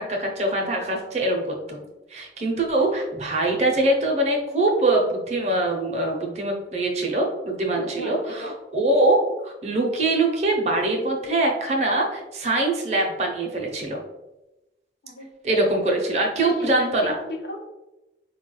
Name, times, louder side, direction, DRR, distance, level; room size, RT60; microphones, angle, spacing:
voice 1, 0.0-1.4 1.7-1.8 2.1-14.0 15.4-17.2, right 2 dB, 40° right, 1 dB, 0.6 m, -23 dB
voice 2, 7.8-8.5 15.0-15.3 16.4-17.7, left 1 dB, 65° left, 1 dB, 0.8 m, -35 dB
4.4 x 2.2 x 3.1 m, 0.98 s
head